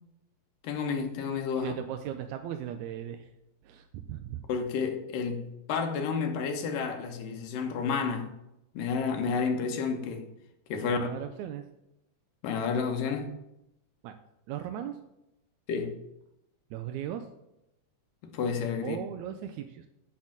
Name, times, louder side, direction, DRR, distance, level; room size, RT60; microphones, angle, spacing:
voice 1, 0.6-1.7 4.5-8.3 8.7-10.3 10.7-11.1 12.4-13.4 15.7-16.0 18.2-19.0, left 5 dB, 80° left, 2.8 m, -30 dB
voice 2, 1.6-3.3 3.6-4.4 11.0-11.6 14.0-14.2 14.5-15.0 16.7-17.3 18.8-19.9, right 10 dB, 80° right, 1.8 m, -37 dB
9.9 x 4.4 x 7.3 m
omnidirectional pair, 3.8 m